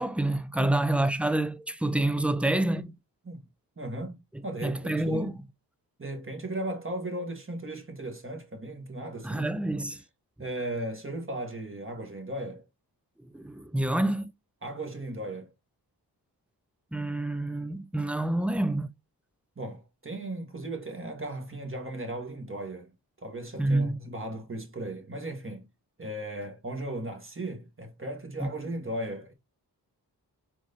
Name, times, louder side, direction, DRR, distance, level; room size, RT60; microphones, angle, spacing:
voice 1, 0.0-2.9 4.6-5.4 9.2-10.0 13.3-14.3 16.9-18.9 23.6-24.0 28.4-28.5, right 1 dB, 5° right, 0.5 m, -27 dB
voice 2, 3.8-5.3 6.0-9.5 10.4-12.6 14.6-15.5 19.6-22.9 23.2-25.7 26.0-29.3, right 1 dB, 30° right, 1.6 m, -36 dB
4.6 x 2.7 x 3.9 m
cardioid pair, 45°, 42 cm